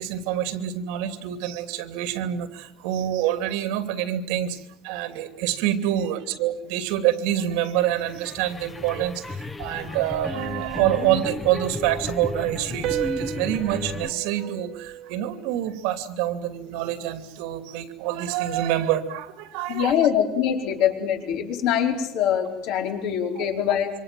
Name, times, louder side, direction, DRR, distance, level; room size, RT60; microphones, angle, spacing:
voice 1, 0.0-20.0 23.3-23.4, right 12 dB, 85° right, 9 dB, 2.9 m, -26 dB
sound 1, 7.8-14.1, left 2 dB, 15° left, 1.2 m, -34 dB
sound 2, 10.3-12.1 12.8-15.5, right 12 dB, 60° right, 1.9 m, -35 dB
voice 2, 19.7-23.9, left 9 dB, 65° left, 3 dB, 4.8 m, -23 dB
27.5 x 25.0 x 7.8 m, 0.75 s
cardioid pair, 165°, 0 cm